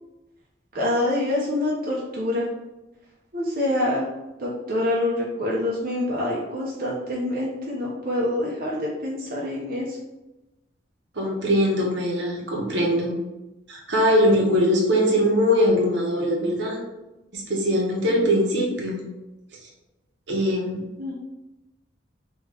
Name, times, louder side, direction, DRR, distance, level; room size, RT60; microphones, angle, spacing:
voice 1, 0.7-2.5 3.3-4.1 4.4-10.0 21.0-21.1, left 1 dB, 50° right, -5 dB, 0.7 m, -26 dB
voice 2, 11.1-13.2 13.7-16.8 17.3-19.0 20.3-20.8, equal, 75° right, -2 dB, 1.0 m, -21 dB
3.7 x 3.0 x 3.3 m, 1.0 s
head